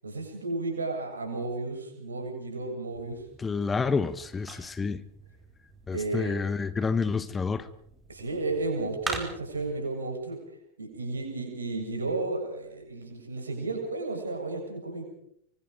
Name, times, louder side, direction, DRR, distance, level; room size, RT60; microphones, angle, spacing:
voice 1, 0.0-3.2 5.9-6.4 8.1-10.4 10.8-15.0, right 3 dB, 75° right, 7.4 m, -33 dB
sound 1, 2.9-9.7, right 3 dB, 15° right, 4.7 m, -43 dB
voice 2, 3.4-5.0 5.9-7.7, left 4 dB, 15° left, 1.1 m, -29 dB
24.5 x 24.5 x 5.2 m
figure-of-eight pair, 90°, 0 cm